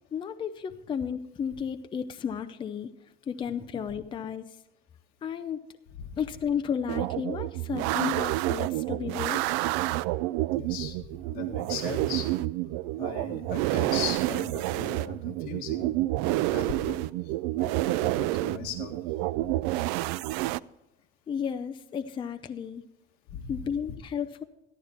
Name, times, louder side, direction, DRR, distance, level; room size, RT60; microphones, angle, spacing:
voice 1, 0.1-2.9 3.3-4.6 5.2-5.6 6.2-9.4 21.3-22.8 23.5-24.4, left 7 dB, 25° left, 8 dB, 0.6 m, -33 dB
sound 1, 6.9-20.6, right 17 dB, 85° right, 0.4 m, -29 dB
voice 2, 10.5-12.3 13.0-15.9 16.2-17.0 17.6-18.9 19.4-19.5 23.3-23.6, left 8 dB, 50° left, -2 dB, 1.8 m, -38 dB
13.5 x 12.0 x 4.4 m, 0.94 s
cardioid pair, 140°, 19 cm